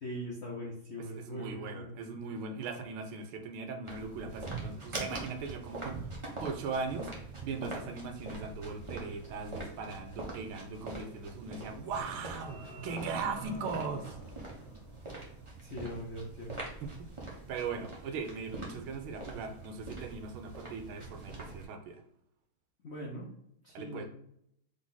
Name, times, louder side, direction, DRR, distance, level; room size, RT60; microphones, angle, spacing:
voice 1, 0.0-1.9 15.6-16.5 22.8-23.3 23.6-24.1, equal, 70° left, -3 dB, 0.6 m, -41 dB
voice 2, 1.1-7.1 7.4-14.2 16.8-22.0 23.7-24.1, right 4 dB, 80° right, 6 dB, 1.5 m, -39 dB
sound 1, 3.8-21.7, right 2 dB, 40° right, 0.4 m, -44 dB
sound 2, 11.3-15.6, right 2 dB, 25° left, 0.8 m, -48 dB
4.0 x 3.2 x 3.8 m, 0.74 s
omnidirectional pair, 2.3 m